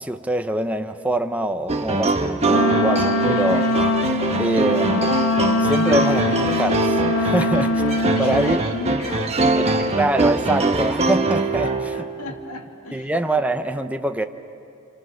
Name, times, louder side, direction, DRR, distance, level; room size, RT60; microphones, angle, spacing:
voice 1, 0.0-3.7 4.4-5.1 5.6-7.7 8.2-8.6 9.6-11.7 12.9-14.2, right 1 dB, 5° right, 7 dB, 0.7 m, -24 dB
sound 1, 1.7-12.1, right 3 dB, 30° right, 1.3 m, -22 dB
Wind instrument woodwind instrument, 2.5-8.6, left 2 dB, 90° left, 0.8 m, -22 dB
voice 2, 7.3-10.0 11.5-13.1, left 3 dB, 70° left, 2 dB, 2.5 m, -35 dB
29.0 x 28.0 x 6.5 m, 2.6 s
head